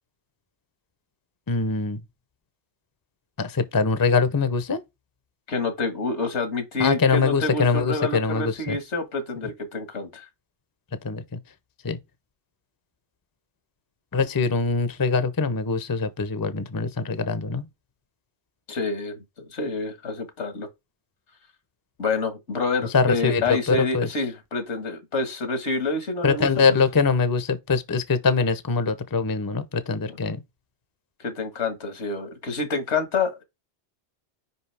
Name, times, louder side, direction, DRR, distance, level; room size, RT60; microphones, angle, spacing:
voice 1, 1.5-2.0 3.4-4.8 6.8-8.8 11.0-11.2 11.8-12.0 14.1-17.7 22.9-24.1 26.2-30.4, left 4 dB, 25° left, 0.6 m, -23 dB
voice 2, 5.5-10.3 18.7-20.7 22.0-26.5 31.2-33.4, left 3 dB, 80° left, 1.8 m, -28 dB
5.5 x 5.2 x 3.4 m
omnidirectional pair, 1.2 m